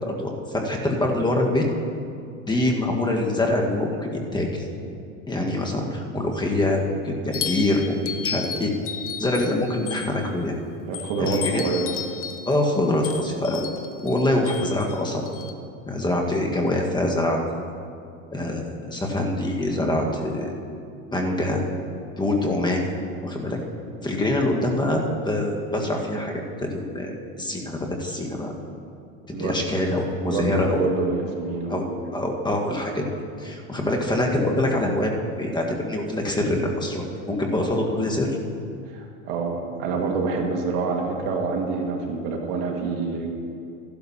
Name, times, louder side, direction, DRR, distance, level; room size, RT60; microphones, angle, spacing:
voice 1, 0.0-1.6 2.5-4.7 5.3-8.7 9.2-10.5 11.2-11.7 12.4-13.7 14.0-15.2 15.9-17.4 18.3-20.6 21.1-21.6 22.2-22.9 23.2-23.6 24.0-28.5 29.3-30.9 31.7-31.8 32.1-33.0 33.4-38.4, left 1 dB, 10° left, 0 dB, 1.4 m, -24 dB
sound 1, 7.3-10.4 10.9-15.5, left 8 dB, 35° left, 0.8 m, -34 dB
voice 2, 10.9-11.9 24.5-24.6 29.3-29.6 30.2-32.1 38.9-43.3, right 4 dB, 60° right, 2 dB, 1.8 m, -27 dB
15.0 x 12.0 x 2.8 m, 2.5 s
hypercardioid pair, 100°, 39 cm